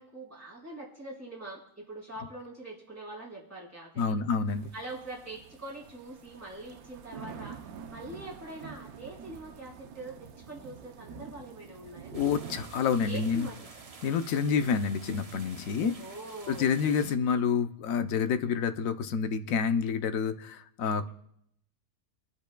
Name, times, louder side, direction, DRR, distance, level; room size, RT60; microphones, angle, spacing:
voice 1, 0.0-4.2 4.7-7.6 7.9-10.2 10.5-12.1 13.0-13.8 14.4-14.7 16.0-16.7, right 2 dB, 10° right, -6 dB, 4.3 m, -43 dB
voice 2, 4.0-4.7 12.1-13.5 14.0-16.0 16.5-21.1, left 6 dB, 70° left, 9 dB, 1.1 m, -28 dB
sound 1, 4.5-17.0, right 7 dB, 85° right, 1.2 m, -48 dB
sound 2, 12.1-17.2, right 3 dB, 35° right, 0.7 m, -50 dB
26.5 x 10.0 x 2.2 m, 0.73 s
omnidirectional pair, 1.5 m